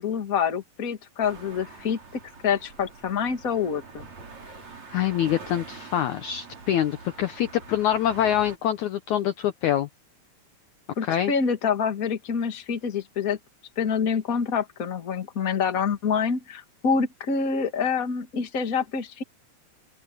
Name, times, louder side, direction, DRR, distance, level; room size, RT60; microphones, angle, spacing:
voice 1, 0.0-2.0 2.4-4.1 11.0-13.4 13.7-19.2, left 6 dB, 30° left, 1.6 m, -26 dB
sound 1, 1.2-8.6, right 4 dB, 45° right, 6.1 m, -44 dB
voice 2, 4.9-9.9 11.0-11.3, left 11 dB, 80° left, 1.7 m, -25 dB
open air
omnidirectional pair, 4.6 m